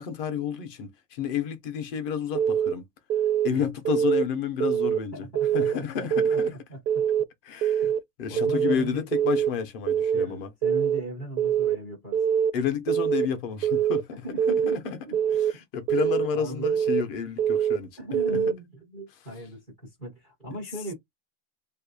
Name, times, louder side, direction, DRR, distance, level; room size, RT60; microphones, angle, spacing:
voice 1, 0.0-2.8 3.4-5.3 5.5-6.5 7.5-7.8 8.2-10.5 12.5-14.1 14.8-15.0 15.4-17.9, left 7 dB, 40° left, 0.7 m, -30 dB
Keyboard (musical) / Alarm, 2.3-2.7 3.1-3.5 3.8-4.2 4.6-5.0 5.3-5.7 6.1-6.5 6.9-7.2 7.6-8.0 8.4-8.7 9.1-9.5 9.9-10.2 10.6-11.0 11.4-11.7 12.1-12.5 12.9-13.2 13.6-14.0 14.4-14.8 15.1-15.5 15.9-16.3 16.6-17.0 17.4-17.8 18.1-18.5, right 8 dB, 85° right, 0.7 m, -24 dB
voice 2, 5.1-7.0 7.8-7.9 8.3-9.1 10.1-12.2 14.1-15.2 15.9-16.7 18.0-20.9, right 1 dB, ahead, 0.3 m, -38 dB
2.9 x 2.6 x 3.8 m
supercardioid pair, 175°, 46 cm